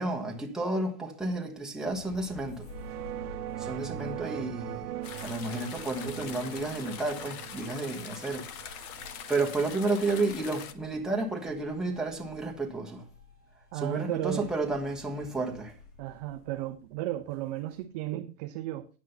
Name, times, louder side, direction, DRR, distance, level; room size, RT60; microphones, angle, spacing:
voice 1, 0.0-2.7 3.6-8.9 9.3-13.0 13.7-15.7, right 2 dB, ahead, 1.3 m, -32 dB
sound 1, 1.8-17.8, left 3 dB, 80° left, 2.2 m, -51 dB
sound 2, 2.6-11.3, right 15 dB, 75° right, 0.6 m, -41 dB
sound 3, 5.0-10.7, left 8 dB, 30° left, 0.8 m, -43 dB
voice 2, 13.7-14.5 16.0-18.9, right 15 dB, 30° right, 0.4 m, -34 dB
9.5 x 6.2 x 5.6 m
hypercardioid pair, 140°, 46 cm